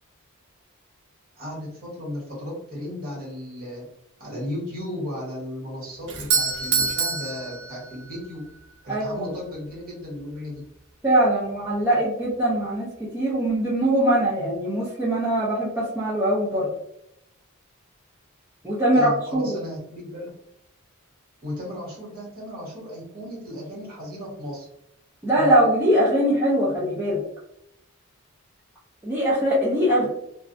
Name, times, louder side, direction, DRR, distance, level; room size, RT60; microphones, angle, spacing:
voice 1, 1.3-3.9 4.2-8.4 8.8-10.6 18.9-20.3 21.4-24.7, left 1 dB, 45° right, -4 dB, 1.2 m, -35 dB
Doorbell, 6.1-8.2, right 5 dB, 60° right, 0.5 m, -26 dB
voice 2, 8.9-9.2 11.0-12.9 13.1-16.7 18.6-19.6 25.2-27.2 29.0-30.1, right 1 dB, 10° right, -8 dB, 0.5 m, -22 dB
2.5 x 2.1 x 2.5 m, 0.80 s
head